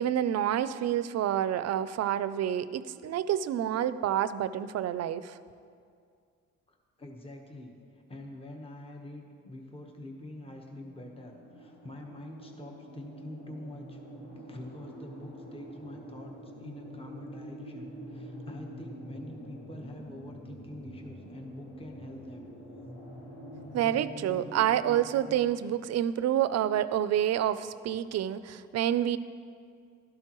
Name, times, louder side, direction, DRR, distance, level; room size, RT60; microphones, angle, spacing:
voice 1, 0.0-5.4 23.7-29.2, right 11 dB, 60° right, 14 dB, 0.5 m, -28 dB
voice 2, 6.7-14.0 14.5-22.5, left 1 dB, 20° left, 2 dB, 1.1 m, -46 dB
sound 1, 9.2-25.4, right 1 dB, 85° left, 2.0 m, -46 dB
12.0 x 11.0 x 3.0 m, 2.2 s
cardioid pair, 90°, 30 cm